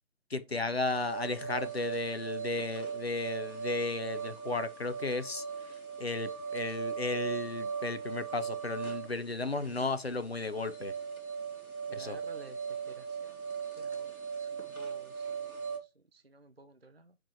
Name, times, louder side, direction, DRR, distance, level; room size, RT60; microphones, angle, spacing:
voice 1, 0.3-5.4 6.0-10.9 11.9-12.2, left 3 dB, 45° left, 0.8 m, -34 dB
sound 1, 0.9-15.8, right 6 dB, 80° right, 3.6 m, -39 dB
voice 2, 11.9-13.4 13.8-14.1 14.4-17.2, right 2 dB, 45° right, 0.6 m, -54 dB
6.1 x 5.0 x 5.1 m
figure-of-eight pair, 165°, 42 cm